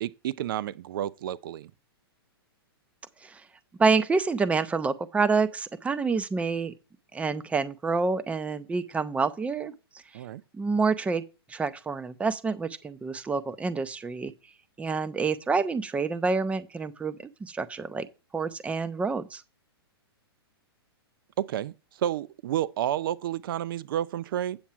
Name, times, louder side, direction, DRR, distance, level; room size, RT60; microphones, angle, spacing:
voice 1, 0.0-1.7 10.1-10.4 21.4-24.6, right 11 dB, 60° right, 0.5 m, -30 dB
voice 2, 3.8-6.7 7.1-9.7 10.5-11.2 11.5-14.3 14.8-18.1 18.3-19.4, right 4 dB, 10° right, 0.7 m, -27 dB
8.8 x 7.2 x 4.6 m
hypercardioid pair, 125°, 13 cm